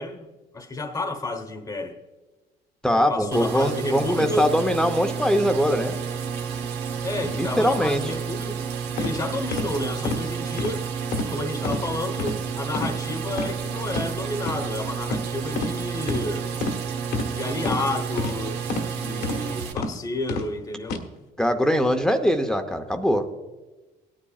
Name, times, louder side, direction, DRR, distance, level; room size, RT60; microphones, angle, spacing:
voice 1, 0.0-2.0 2.9-4.5 7.0-8.6 9.0-10.9 11.3-16.5 17.3-21.1, left 2 dB, 20° left, 6 dB, 1.1 m, -31 dB
voice 2, 2.8-6.0 7.4-8.0 21.4-23.3, equal, 5° left, 6 dB, 0.8 m, -22 dB
sound 1, 3.3-19.7, right 6 dB, 90° right, 1.2 m, -31 dB
sound 2, 9.0-9.1 9.5-9.7 10.0-10.2 10.6-10.7 11.1-11.3 11.6-11.8 12.2-12.4 12.7-12.9 13.3-13.5 13.9-14.1 14.4-14.6 15.1-15.2 15.5-15.7 16.1-16.2 16.6-16.8 17.1-17.3 17.6-17.8 18.2-18.3 18.7-18.9 19.2-19.4 19.8-19.9 20.3-20.5 20.8-21.0, left 3 dB, 80° left, 1.4 m, -28 dB
17.5 x 10.0 x 2.4 m, 1.2 s
cardioid pair, 110°, 17 cm